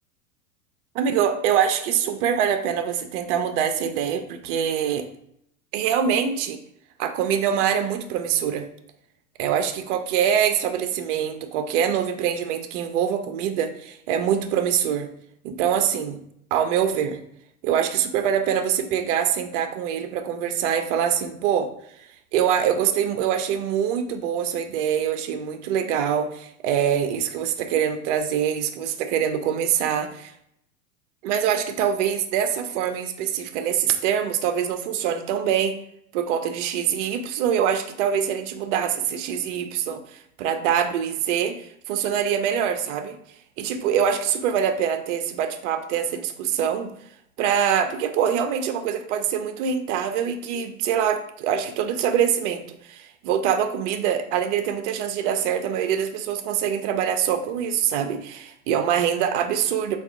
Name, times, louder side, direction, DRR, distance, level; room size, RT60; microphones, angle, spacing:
voice 1, 1.0-5.1 5.7-6.6 7.0-8.7 9.4-15.1 15.4-16.2 16.5-17.2 17.6-21.7 22.3-30.3 31.2-35.7 36.1-41.5 41.9-43.2 43.6-46.9 47.4-60.0, right 8 dB, 60° right, 7 dB, 0.5 m, -24 dB
3.4 x 2.3 x 3.6 m, 0.72 s
hypercardioid pair, 110°, 43 cm